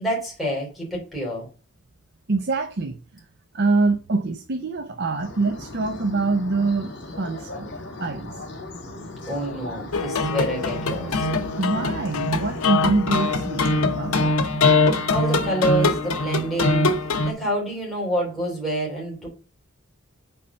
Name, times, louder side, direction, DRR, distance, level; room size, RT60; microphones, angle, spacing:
voice 1, 0.0-1.5 9.3-11.3 15.1-16.8 17.2-19.3, right 1 dB, ahead, 3.0 m, -27 dB
voice 2, 2.3-3.2 3.5-6.9 7.2-7.7 8.0-8.4 11.6-14.2, right 3 dB, 50° right, 0.6 m, -24 dB
sound 1, 5.2-14.3, left 2 dB, 60° left, 1.9 m, -38 dB
sound 2, 9.9-17.3, left 3 dB, 90° left, 0.9 m, -22 dB
5.4 x 4.2 x 5.3 m
head